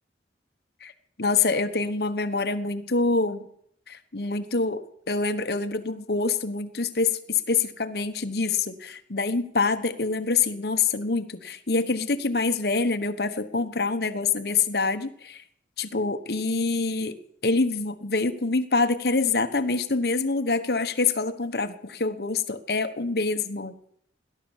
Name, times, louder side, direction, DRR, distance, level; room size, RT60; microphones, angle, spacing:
voice 1, 1.2-3.4 3.9-15.4 15.8-17.2 17.4-23.7, left 4 dB, 60° left, 10 dB, 1.2 m, -26 dB
18.0 x 11.0 x 7.2 m, 0.68 s
head